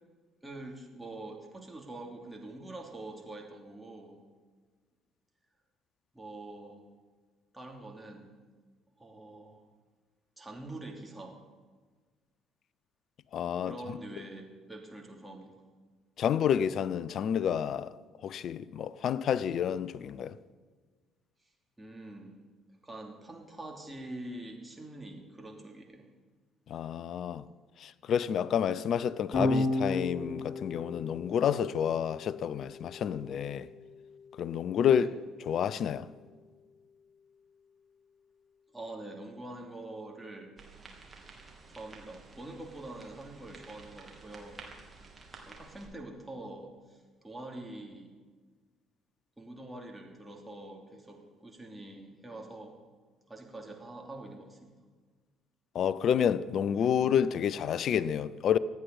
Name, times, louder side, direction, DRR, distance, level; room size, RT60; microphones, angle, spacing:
voice 1, 0.4-4.2 6.1-6.9 7.5-8.3 9.0-9.6 10.4-11.4 13.6-15.5 21.8-22.4 22.8-26.1 35.0-35.1 38.7-40.5 41.7-44.7 45.5-48.1 49.4-52.8 53.3-54.7, right 2 dB, 10° right, 2.9 m, -45 dB
voice 2, 13.3-13.8 16.2-17.9 18.2-20.4 26.7-27.5 27.8-33.7 34.4-35.1 35.5-36.1 55.7-58.6, left 8 dB, 50° left, 0.5 m, -29 dB
Electric guitar / Bass guitar, 29.3-35.7, left 2 dB, 30° left, 4.5 m, -35 dB
sound 1, 40.6-45.9, right 3 dB, 25° right, 3.2 m, -52 dB
25.0 x 9.4 x 4.1 m
figure-of-eight pair, 50°, 0 cm